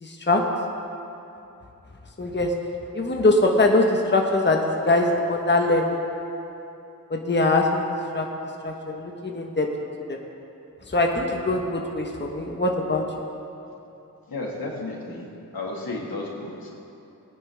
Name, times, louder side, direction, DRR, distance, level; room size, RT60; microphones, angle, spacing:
voice 1, 0.0-0.4 2.2-2.5 2.9-6.0 7.1-7.9 8.1-8.2 8.6-9.7 10.1-10.2 10.9-13.0, left 2 dB, 30° left, 1 dB, 1.2 m, -22 dB
voice 2, 14.3-15.3 15.5-16.7, left 2 dB, 80° left, -2 dB, 2.0 m, -32 dB
19.0 x 9.9 x 3.5 m, 2.8 s
wide cardioid pair, 65°, 35 cm